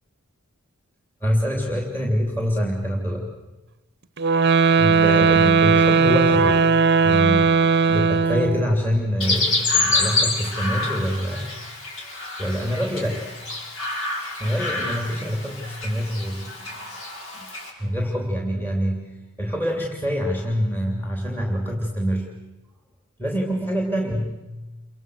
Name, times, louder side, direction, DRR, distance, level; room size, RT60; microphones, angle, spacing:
voice 1, 1.2-3.4 4.8-6.7 7.0-11.5 12.4-13.3 14.4-16.7 17.3-17.5 17.8-19.1 19.4-22.3 23.2-24.5, equal, 10° left, 1 dB, 3.1 m, -25 dB
sound 1, 4.2-8.7, right 5 dB, 50° right, 0.8 m, -17 dB
Chirp tweet, 9.2-17.7, left 2 dB, 65° left, 6.8 m, -27 dB
29.5 x 25.0 x 6.6 m, 1.1 s
head